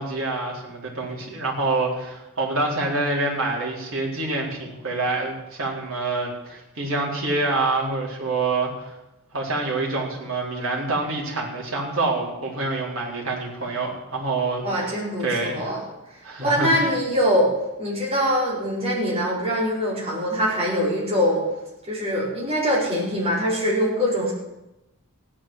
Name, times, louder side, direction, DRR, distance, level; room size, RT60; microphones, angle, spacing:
voice 1, 0.0-8.9 9.3-14.9 15.2-15.7 16.2-16.9, right 2 dB, 65° right, -3 dB, 4.3 m, -26 dB
voice 2, 14.6-15.8 16.4-17.5 17.8-21.4 21.9-24.3, equal, 25° right, -5 dB, 5.1 m, -23 dB
16.0 x 10.5 x 7.7 m, 0.95 s
head